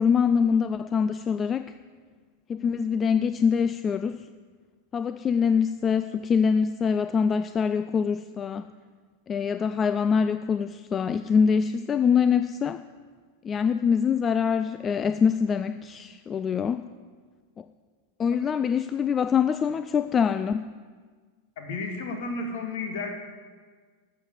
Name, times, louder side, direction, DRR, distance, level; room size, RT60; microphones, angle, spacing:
voice 1, 0.0-1.7 2.5-4.2 4.9-8.6 9.3-12.8 13.4-16.8 17.6-17.7 18.2-20.7, left 6 dB, 20° left, 12 dB, 0.3 m, -24 dB
voice 2, 21.6-23.1, left 3 dB, 55° left, 4 dB, 2.1 m, -32 dB
13.0 x 7.2 x 8.1 m, 1.5 s
figure-of-eight pair, 90°, 0 cm